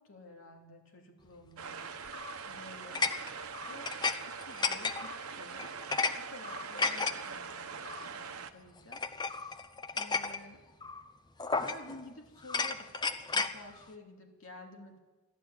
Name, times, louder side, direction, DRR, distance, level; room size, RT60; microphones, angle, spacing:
voice 1, 0.0-1.8 2.5-3.2 3.5-3.9 4.2-5.7 6.1-9.0 9.9-10.7 11.5-15.0, left 2 dB, 65° left, 1 dB, 2.9 m, -51 dB
sound 1, 1.6-8.5, right 5 dB, 80° right, 1.0 m, -43 dB
sound 2, 2.1-2.4 2.9-4.2 4.4-5.2 5.6-6.1 6.4-7.1 7.8-8.1 8.9-10.4 10.8-11.0 11.4-12.0 12.4-13.5, left 4 dB, 20° left, 0.7 m, -33 dB
13.0 x 12.5 x 8.9 m, 1.2 s
head